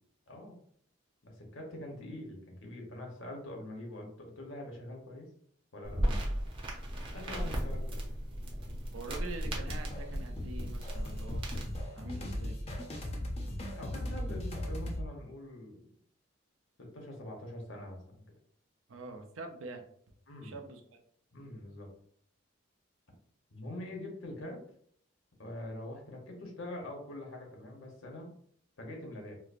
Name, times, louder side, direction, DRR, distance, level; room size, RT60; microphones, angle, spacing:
voice 1, 0.3-0.6 1.2-5.3 5.7-6.0 7.1-8.1 8.5-8.8 13.7-15.8 16.8-18.2 20.3-20.5 21.3-21.9 23.5-24.6 25.4-28.3 28.8-29.3, left 1 dB, 75° left, 1 dB, 0.9 m, -44 dB
sound 1, 5.8-11.8, equal, 25° right, 0.6 m, -36 dB
voice 2, 8.9-11.7 11.9-12.6 18.9-19.8 20.4-21.0, right 2 dB, 85° right, 4 dB, 0.6 m, -45 dB
sound 2, 9.4-15.1, left 1 dB, 30° left, 0.5 m, -38 dB
4.4 x 2.0 x 2.5 m, 0.63 s
head